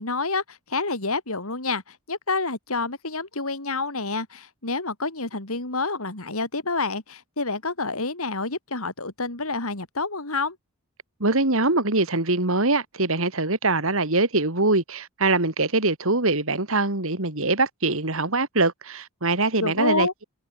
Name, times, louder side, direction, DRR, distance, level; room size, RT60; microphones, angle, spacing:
voice 1, 0.0-10.6 19.6-20.1, left 3 dB, 70° left, 3.7 m, -28 dB
voice 2, 11.2-20.2, right 2 dB, 65° right, 2.9 m, -23 dB
head